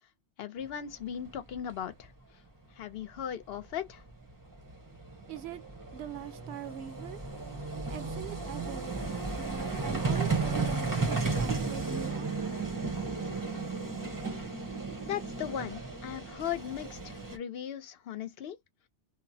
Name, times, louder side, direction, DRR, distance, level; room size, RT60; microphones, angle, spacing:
voice 1, 0.4-2.1 2.8-4.0 15.0-18.6, left 9 dB, 60° left, 0.8 m, -37 dB
Vehicle, 1.3-1.4 1.5-1.7 3.7-3.8 4.0-17.4, right 4 dB, 20° right, 0.7 m, -34 dB
voice 2, 5.3-5.6 5.9-7.2 7.9-12.7, right 9 dB, 70° right, 0.8 m, -43 dB
2.9 x 2.0 x 2.6 m
omnidirectional pair, 1.2 m